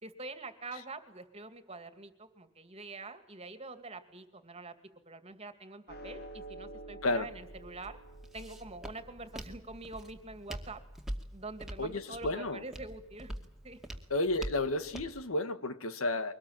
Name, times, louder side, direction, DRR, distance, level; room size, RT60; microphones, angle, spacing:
voice 1, 0.0-4.7 5.1-8.0 8.3-10.8 11.3-13.3 13.6-13.8, right 3 dB, 30° right, 10 dB, 2.4 m, -45 dB
sound 1, 5.9-12.4, right 2 dB, 50° left, 2.6 m, -51 dB
Walk footsteps, 7.1-15.2, equal, ahead, 2.3 m, -45 dB
voice 2, 11.8-12.6 14.1-16.3, left 2 dB, 80° left, 12 dB, 1.6 m, -32 dB
23.5 x 19.5 x 9.0 m, 0.83 s
head